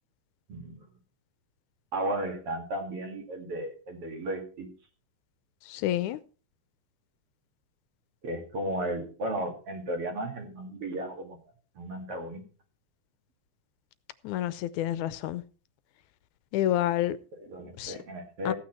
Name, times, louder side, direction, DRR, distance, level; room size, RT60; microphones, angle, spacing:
voice 1, 0.5-0.9 1.9-4.7 8.2-11.4 11.8-12.4 17.3-18.5, right 1 dB, 50° right, 3.0 m, -34 dB
voice 2, 5.7-6.2 14.2-15.4 16.5-17.2 17.8-18.0 18.5-18.6, left 13 dB, 80° left, 2.1 m, -28 dB
15.0 x 9.0 x 4.4 m
omnidirectional pair, 3.5 m